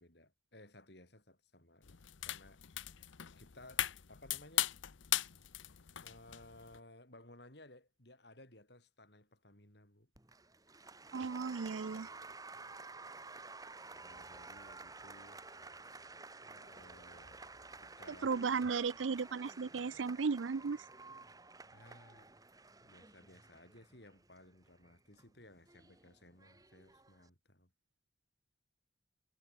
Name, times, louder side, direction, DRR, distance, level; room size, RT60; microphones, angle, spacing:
voice 1, 0.0-3.0 3.4-4.7 6.0-10.1 11.9-12.8 13.9-15.4 16.4-17.4 17.8-18.3 21.7-22.3 22.8-27.7, left 1 dB, 60° left, 6.5 m, -59 dB
sound 1, 1.8-6.8, left 13 dB, 80° left, 0.8 m, -39 dB
Applause, 10.1-27.3, right 3 dB, 20° right, 2.6 m, -53 dB
voice 2, 11.1-12.1 18.2-20.8, right 5 dB, 75° right, 0.5 m, -35 dB
sound 2, 14.1-20.0, left 1 dB, 40° left, 6.0 m, -69 dB
head